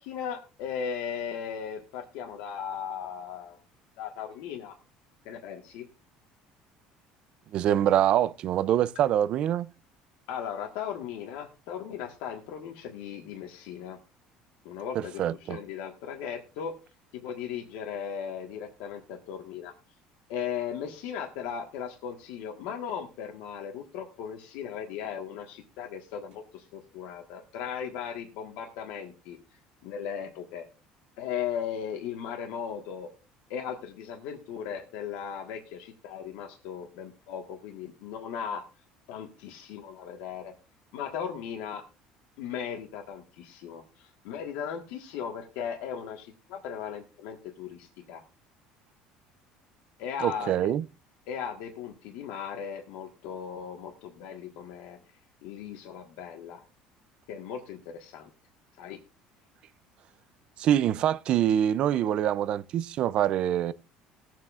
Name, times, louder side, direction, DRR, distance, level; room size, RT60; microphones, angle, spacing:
voice 1, 0.0-3.6 4.0-4.7 5.2-5.9 10.3-14.0 14.6-16.8 17.1-19.7 20.3-29.4 29.8-30.7 31.2-33.1 33.5-38.6 39.1-40.5 40.9-41.8 42.4-48.2 50.0-50.7 51.3-55.0 55.4-56.6 57.3-58.3 58.8-59.0, left 8 dB, 85° left, 1.4 m, -37 dB
voice 2, 7.5-9.7 15.0-15.6 50.2-50.8 60.6-63.7, right 11 dB, 45° right, 0.4 m, -25 dB
20.0 x 7.5 x 2.4 m
cardioid pair, 150°, 2 cm